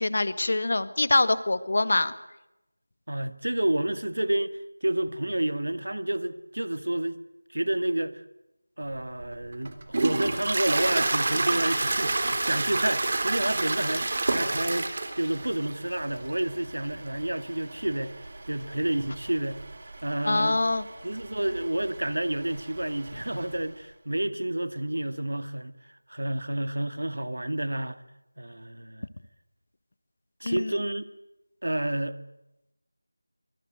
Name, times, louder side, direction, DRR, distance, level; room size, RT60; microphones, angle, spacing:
voice 1, 0.0-2.1 20.3-20.8 30.4-30.7, left 2 dB, 50° left, 1.8 m, -24 dB
voice 2, 3.1-7.2 7.5-8.2 8.8-14.9 15.2-18.1 18.5-19.6 20.0-20.6 21.0-25.8 26.1-28.0 28.4-29.1 30.4-31.1 31.6-32.2, right 1 dB, 75° right, 2.1 m, -29 dB
Toilet flush, 8.9-23.6, right 2 dB, 40° right, 3.4 m, -31 dB
25.0 x 22.0 x 9.3 m
figure-of-eight pair, 170°, 0 cm